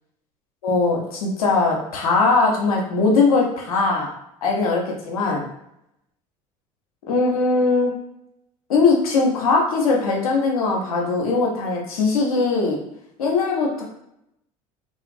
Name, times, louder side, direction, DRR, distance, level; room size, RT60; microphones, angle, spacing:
voice 1, 0.6-4.1 4.4-5.5 7.1-7.9 8.7-12.8 13.2-13.8, left 3 dB, 85° left, -1 dB, 0.6 m, -20 dB
2.5 x 2.4 x 2.4 m, 0.78 s
hypercardioid pair, 70°, 18 cm